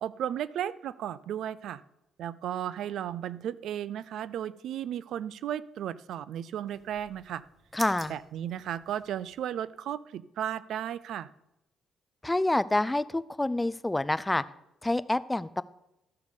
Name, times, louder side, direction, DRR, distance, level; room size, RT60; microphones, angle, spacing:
voice 1, 0.0-1.8 2.2-7.4 8.1-11.3, right 10 dB, 75° right, 18 dB, 0.4 m, -34 dB
sound 1, 6.7-9.5, right 3 dB, 35° right, 1.0 m, -48 dB
voice 2, 7.7-8.1 12.2-14.4 14.8-15.6, left 1 dB, 10° left, 16 dB, 0.4 m, -27 dB
13.0 x 6.5 x 5.3 m, 0.89 s
cardioid pair, 90°, 0 cm